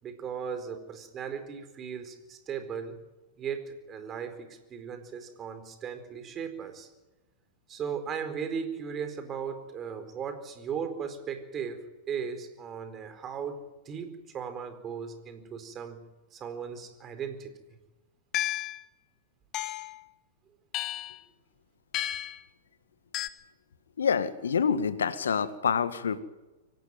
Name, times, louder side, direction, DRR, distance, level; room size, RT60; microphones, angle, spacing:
voice 1, 0.0-3.0 3.4-6.9 7.7-13.6 13.8-16.0 16.3-17.5, right 7 dB, 30° right, 9 dB, 4.3 m, -37 dB
sound 1, 18.3-18.8 19.5-20.0 20.7-21.2 21.9-22.4 23.1-23.3, left 14 dB, 35° left, 1.4 m, -32 dB
voice 2, 24.0-26.2, left 6 dB, 75° left, 13 dB, 1.7 m, -27 dB
24.5 x 17.5 x 9.3 m, 1.1 s
figure-of-eight pair, 100°, 0 cm